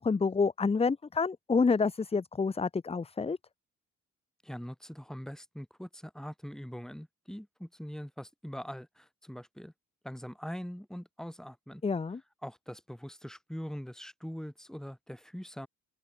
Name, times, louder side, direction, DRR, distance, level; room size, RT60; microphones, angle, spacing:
voice 1, 0.0-3.4 11.8-12.2, left 4 dB, 20° left, 0.8 m, -28 dB
voice 2, 4.4-9.7 10.0-11.8 12.4-15.7, equal, ahead, 5.9 m, -42 dB
open air
cardioid pair, 90°, 30 cm